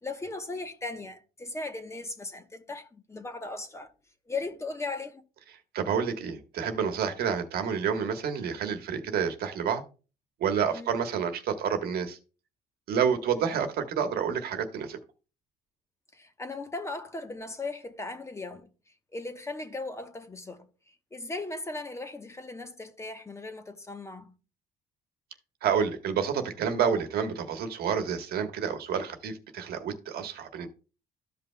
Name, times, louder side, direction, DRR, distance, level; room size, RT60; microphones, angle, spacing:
voice 1, 0.0-3.9 4.3-5.2 10.7-11.0 16.1-18.7 19.1-20.7 21.1-24.3, left 3 dB, 15° left, 1.0 m, -37 dB
voice 2, 5.7-9.8 10.4-12.2 12.9-15.0 25.6-30.7, right 7 dB, 65° right, 1.3 m, -29 dB
14.0 x 5.5 x 2.2 m
cardioid pair, 110°, 17 cm